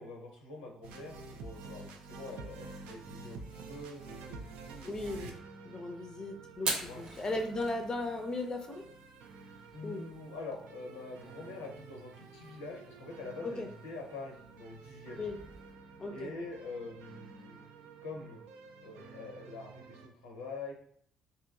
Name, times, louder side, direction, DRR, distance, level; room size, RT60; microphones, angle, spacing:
voice 1, 0.0-5.0 6.8-7.0 9.7-15.3 16.1-17.7 18.0-18.4 18.8-20.8, left 3 dB, 80° left, 1 dB, 0.5 m, -45 dB
sound 1, 0.8-20.1, right 4 dB, 70° right, 0.3 m, -50 dB
voice 2, 4.9-5.3 5.6-8.8 9.8-10.0 13.4-13.7 15.2-15.4 16.0-16.3, left 2 dB, 30° left, 4 dB, 0.4 m, -37 dB
Fire, 6.5-15.7, right 3 dB, 50° right, 0.7 m, -45 dB
2.9 x 2.9 x 2.3 m, 0.63 s
hypercardioid pair, 50°, 2 cm